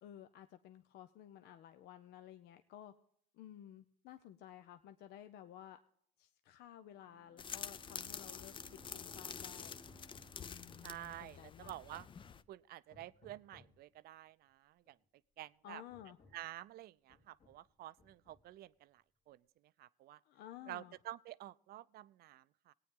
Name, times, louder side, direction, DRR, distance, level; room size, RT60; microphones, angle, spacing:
voice 1, 0.0-2.9 3.3-5.8 6.2-8.5 8.9-9.8 10.4-11.7 15.6-16.2 20.2-21.0, left 11 dB, 75° left, 9 dB, 0.6 m, -54 dB
Bowed string instrument, 7.0-11.6, right 5 dB, 20° right, 0.5 m, -64 dB
sound 1, 7.4-12.4, left 7 dB, 30° left, 0.4 m, -48 dB
Hammer, 8.8-11.1 11.6-12.5 12.9-13.8 14.9-15.0 15.4-15.5 15.9-16.5 17.1-17.7 18.0-18.7, left 3 dB, 50° left, 2.1 m, -64 dB
voice 2, 10.8-12.1 12.5-15.0 15.4-15.8 16.3-19.4 19.8-20.2 20.7-22.7, right 14 dB, 65° right, 17 dB, 0.5 m, -50 dB
18.0 x 9.1 x 3.6 m, 0.66 s
cardioid pair, 110°, 17 cm